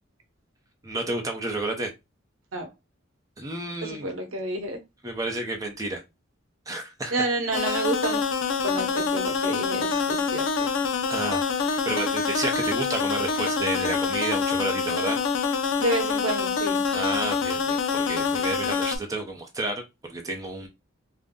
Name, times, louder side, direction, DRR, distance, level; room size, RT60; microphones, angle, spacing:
voice 1, 0.8-1.9 3.4-4.1 5.0-6.0 6.7-7.1 7.7-7.9 9.8-10.0 11.1-15.2 16.9-19.8 20.1-20.7, right 2 dB, 15° right, 0.7 m, -31 dB
voice 2, 3.8-4.8 7.1-8.2 8.6-10.7 15.8-16.8, right 2 dB, 85° right, 0.8 m, -29 dB
sound 1, 7.5-19.0, left 5 dB, 70° left, 0.5 m, -26 dB
2.6 x 2.2 x 3.5 m
head